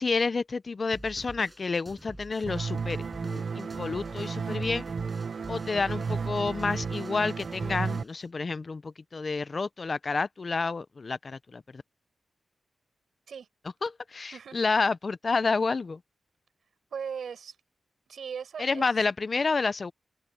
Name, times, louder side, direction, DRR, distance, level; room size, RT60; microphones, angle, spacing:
voice 1, 0.0-4.9 5.5-11.8 13.8-16.0 18.6-19.9, left 4 dB, 40° left, 0.4 m, -29 dB
sound 1, 0.9-8.3, right 1 dB, 10° right, 5.4 m, -47 dB
sound 2, 2.5-8.0, right 5 dB, 50° right, 0.3 m, -33 dB
voice 2, 16.9-17.6 18.1-19.0, right 7 dB, 80° right, 5.3 m, -38 dB
open air
wide cardioid pair, 135°, 0 cm